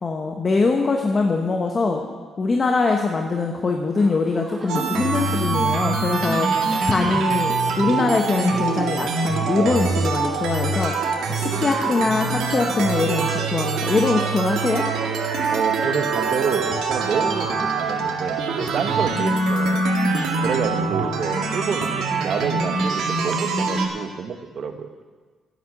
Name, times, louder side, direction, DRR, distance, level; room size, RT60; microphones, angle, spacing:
voice 1, 0.0-2.1 2.4-10.9 11.3-14.9, left 3 dB, 35° left, 2 dB, 1.2 m, -22 dB
sound 1, 3.9-15.6, right 2 dB, 35° right, 1.8 m, -39 dB
sound 2, 4.7-23.9, right 4 dB, 85° right, 1.8 m, -24 dB
voice 2, 15.5-19.9 20.4-24.9, right 6 dB, 55° right, 7 dB, 1.3 m, -28 dB
10.5 x 9.5 x 7.8 m, 1.5 s
cardioid pair, 90°, 0 cm